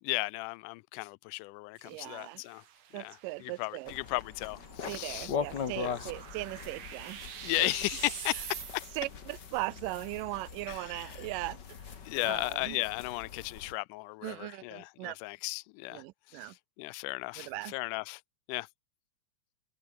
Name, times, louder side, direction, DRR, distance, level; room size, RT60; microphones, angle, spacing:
voice 1, 0.0-2.6 2.9-5.3 5.8-6.0 7.4-8.9 10.7-11.2 12.1-18.2 18.5-18.7, left 23 dB, 80° left, 2.0 m, -35 dB
sound 1, 1.8-9.2, right 10 dB, 60° right, 2.7 m, -47 dB
voice 2, 1.9-2.4 2.9-3.9 4.9-7.2 7.6-7.8 9.0-11.6 12.2-12.8 14.2-15.2 15.9-16.6 17.4-17.7, right 21 dB, 90° right, 2.2 m, -39 dB
sound 2, 3.9-13.7, left 7 dB, 40° left, 1.9 m, -41 dB
omnidirectional pair, 3.7 m